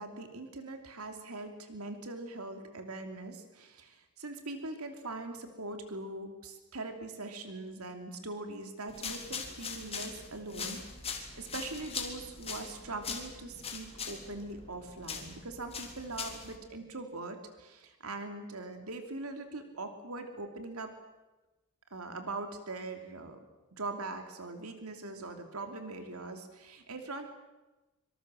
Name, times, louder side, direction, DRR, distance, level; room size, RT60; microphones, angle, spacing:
voice 1, 0.0-20.9 21.9-23.4 23.7-27.3, right 2 dB, 70° right, 6 dB, 3.0 m, -42 dB
sound 1, 8.9-16.6, left 5 dB, 30° left, 3.7 m, -41 dB
25.5 x 25.0 x 7.7 m, 1.1 s
head